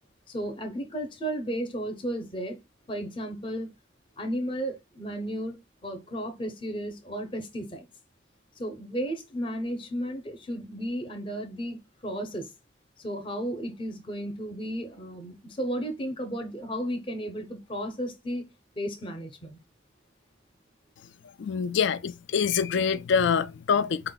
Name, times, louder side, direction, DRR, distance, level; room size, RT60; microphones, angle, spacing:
voice 1, 0.3-2.6 2.9-3.7 4.2-7.9 8.6-12.5 13.0-18.4 18.8-19.6, equal, 25° left, 0.7 m, -34 dB
voice 2, 21.4-24.1, left 6 dB, 65° left, 0.3 m, -25 dB
4.3 x 2.2 x 3.8 m
head